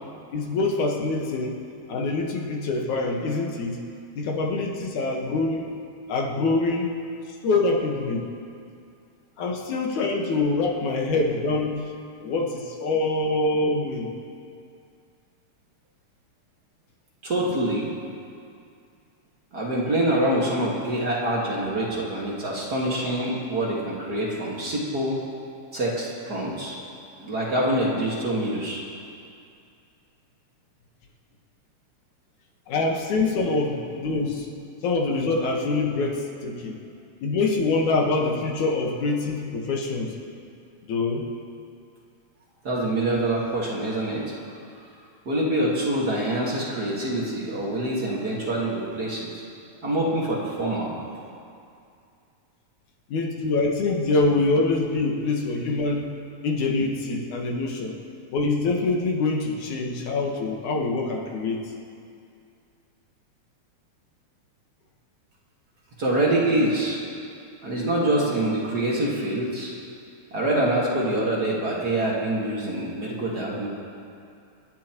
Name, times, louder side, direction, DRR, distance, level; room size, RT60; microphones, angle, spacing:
voice 1, 0.3-1.6 1.9-3.9 4.1-5.6 6.1-6.9 7.4-8.2 9.4-11.9 12.2-14.1 32.7-34.5 34.8-36.8 37.2-40.2 40.9-41.3 53.1-56.1 56.4-58.0 58.3-61.6, left 3 dB, 85° left, 0 dB, 2.8 m, -25 dB
voice 2, 17.2-17.9 19.5-25.2 25.7-26.8 27.2-28.8 42.6-44.3 45.3-49.4 49.8-50.9 66.0-67.0 67.6-69.7 70.3-73.7, right 1 dB, 40° right, -5 dB, 2.0 m, -25 dB
27.5 x 11.0 x 3.0 m, 2.4 s
omnidirectional pair, 3.3 m